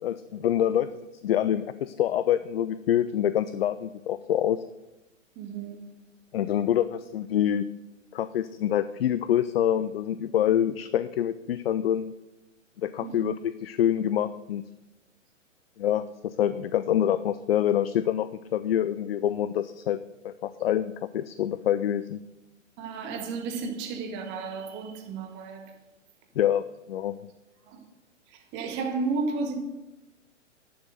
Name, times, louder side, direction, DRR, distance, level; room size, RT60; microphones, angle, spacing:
voice 1, 0.0-4.6 6.3-7.7 8.1-12.1 12.8-14.6 15.8-20.0 20.2-22.2 26.4-27.2, left 10 dB, 50° left, 0.5 m, -26 dB
voice 2, 5.4-5.8 13.0-13.3 22.8-25.7 27.7-27.8 28.3-29.6, right 4 dB, 30° right, 2.0 m, -33 dB
11.5 x 6.5 x 7.7 m
figure-of-eight pair, 115°, 38 cm